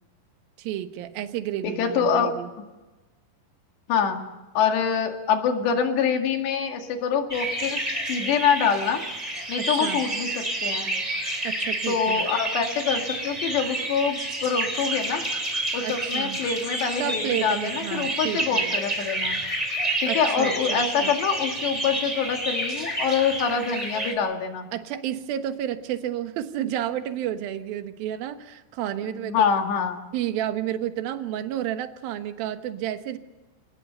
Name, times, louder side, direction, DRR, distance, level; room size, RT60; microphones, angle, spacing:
voice 1, 0.6-2.5 9.6-10.0 11.4-12.3 15.8-16.4 17.0-18.7 20.1-21.2 24.7-29.3 30.1-33.2, right 11 dB, 65° right, 8 dB, 2.8 m, -31 dB
voice 2, 1.6-2.3 3.9-4.2 4.6-9.0 9.5-10.9 11.9-15.2 15.7-19.4 20.0-24.7 29.0-30.0, left 6 dB, 80° left, 4 dB, 4.3 m, -25 dB
sound 1, 7.3-24.1, right 1 dB, 10° right, 2.7 m, -29 dB
28.0 x 19.5 x 6.8 m, 1.2 s
omnidirectional pair, 4.9 m